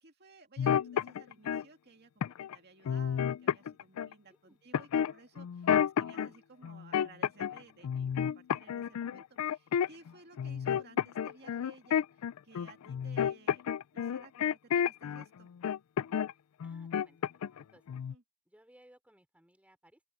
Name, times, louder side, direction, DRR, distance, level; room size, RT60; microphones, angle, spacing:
voice 1, 0.0-13.6 13.9-15.5 18.1-18.2, right 3 dB, 50° right, 2.2 m, -58 dB
sound 1, 0.6-1.6 2.2-2.5 2.8-4.1 4.7-6.3 6.6-7.6 7.8-10.1 10.4-15.2 15.6-16.3 16.6-17.6 17.9-18.1, left 8 dB, 90° left, 0.4 m, -30 dB
voice 2, 16.6-17.2 17.4-17.8 18.5-20.0, right 1 dB, 5° right, 3.5 m, -62 dB
open air
head